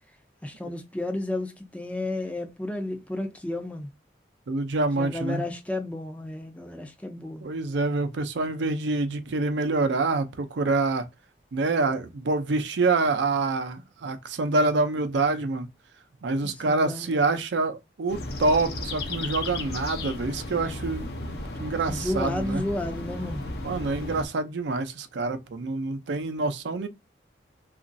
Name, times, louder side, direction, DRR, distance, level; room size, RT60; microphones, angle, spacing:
voice 1, 0.4-3.9 5.0-7.4 16.4-17.2 21.9-23.4, left 2 dB, 10° left, 0.4 m, -32 dB
voice 2, 4.5-5.4 7.4-11.0 11.5-15.7 16.2-21.2 21.6-22.6 23.6-26.9, right 3 dB, 85° right, 0.5 m, -26 dB
sound 1, 18.1-24.3, left 2 dB, 60° left, 0.6 m, -34 dB
2.9 x 2.4 x 2.5 m
head